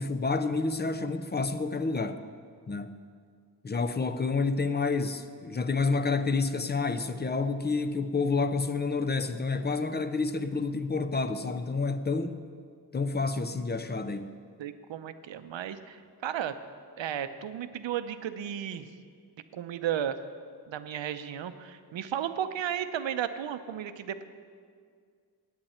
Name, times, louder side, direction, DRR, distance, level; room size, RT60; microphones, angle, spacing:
voice 1, 0.0-2.2 2.7-3.0 3.6-12.5 12.9-14.3, left 4 dB, 25° left, 10 dB, 0.5 m, -29 dB
voice 2, 14.6-16.6 17.0-18.9 19.5-20.2 20.7-24.2, right 10 dB, 85° right, 11 dB, 0.7 m, -34 dB
17.5 x 8.8 x 4.3 m, 2.1 s
wide cardioid pair, 150°, 44 cm